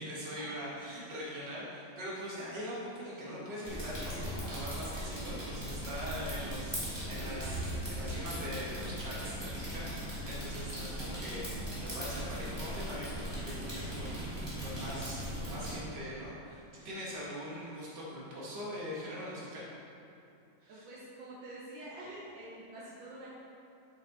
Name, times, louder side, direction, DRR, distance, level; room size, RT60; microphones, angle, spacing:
voice 1, 0.0-6.8 7.1-14.2 14.6-19.6 20.6-20.8, equal, 65° right, -7 dB, 2.3 m, -42 dB
sound 1, 3.6-15.8, right 1 dB, 15° right, 1.4 m, -39 dB
sound 2, 5.2-15.8, equal, 35° left, 1.7 m, -47 dB
voice 2, 20.7-23.3, right 1 dB, 85° right, -7 dB, 1.8 m, -47 dB
7.2 x 5.7 x 4.1 m, 2.8 s
omnidirectional pair, 2.0 m